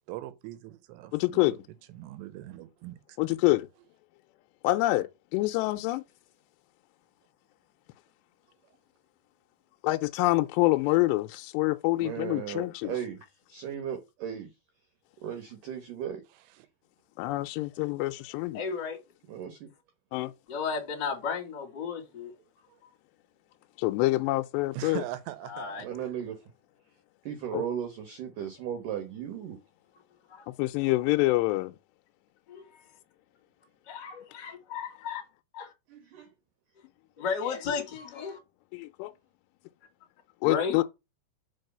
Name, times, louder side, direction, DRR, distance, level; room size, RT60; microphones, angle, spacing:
voice 1, 0.1-1.6 1.9-3.0 18.1-18.2 22.7-22.8 24.7-25.8, right 14 dB, 85° right, 3.1 m, -40 dB
voice 2, 1.1-1.6 3.2-3.7 4.6-5.1 5.3-6.0 9.8-12.9 17.2-18.6 20.1-20.3 23.8-25.0 27.5-27.6 30.5-31.7 38.7-39.1 40.4-40.8, left 19 dB, 85° left, 2.7 m, -26 dB
voice 3, 12.0-13.2 13.5-14.5 15.2-16.2 19.3-19.7 25.8-26.5 27.3-29.6 35.9-36.3, right 9 dB, 65° right, 2.3 m, -36 dB
voice 4, 18.5-19.0 20.5-22.3 25.5-25.8 30.3-30.4 32.5-32.8 33.9-35.2 35.5-35.7 37.2-38.4 40.4-40.8, left 6 dB, 35° left, 2.1 m, -34 dB
6.3 x 4.8 x 6.6 m
omnidirectional pair, 5.0 m